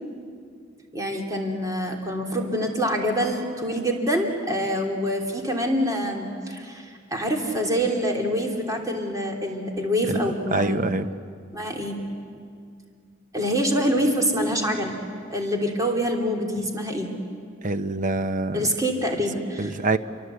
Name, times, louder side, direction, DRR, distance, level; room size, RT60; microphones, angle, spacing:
voice 1, 0.9-10.9 11.5-12.1 13.3-14.9 15.3-17.1 18.5-19.7, equal, 20° right, 1 dB, 3.0 m, -26 dB
voice 2, 10.5-11.1 17.6-18.7 19.6-20.0, right 2 dB, 45° right, 11 dB, 0.9 m, -25 dB
28.5 x 24.0 x 8.3 m, 2.2 s
head